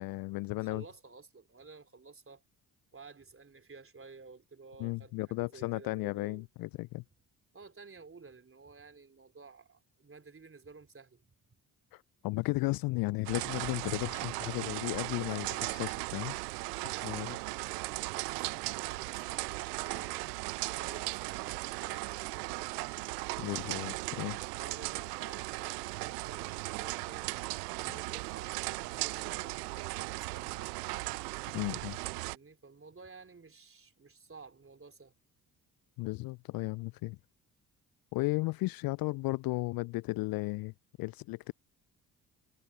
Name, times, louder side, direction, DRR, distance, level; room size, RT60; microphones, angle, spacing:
voice 1, 0.0-0.8 4.8-7.0 11.9-16.4 17.0-17.4 23.4-24.4 31.5-32.0 36.0-37.2 38.1-40.7 41.0-41.5, left 22 dB, 50° left, 0.5 m, -34 dB
voice 2, 0.5-2.4 2.9-6.5 7.5-11.3 16.7-20.4 20.7-23.1 24.6-27.3 27.8-31.0 32.2-35.1, right 4 dB, 25° right, 3.6 m, -53 dB
sound 1, 13.2-32.4, right 25 dB, 75° right, 0.6 m, -37 dB
figure-of-eight pair, 45°, 48 cm